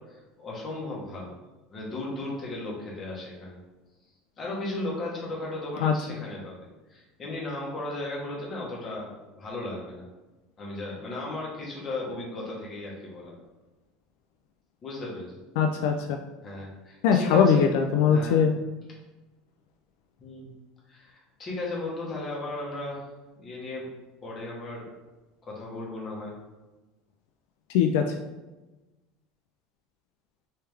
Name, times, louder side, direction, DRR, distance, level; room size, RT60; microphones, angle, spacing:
voice 1, 0.0-1.3 1.7-3.6 4.4-6.6 6.9-10.0 10.6-13.3 14.8-15.4 16.4-17.7 18.0-18.5 20.2-20.5 20.9-23.1 23.3-23.9 24.2-24.9 25.4-26.3, left 2 dB, 25° left, -4 dB, 1.1 m, -36 dB
voice 2, 15.6-15.9 17.0-18.5 27.7-28.0, left 7 dB, 75° left, 4 dB, 0.3 m, -21 dB
3.3 x 3.2 x 3.3 m, 1.1 s
cardioid pair, 155°, 0 cm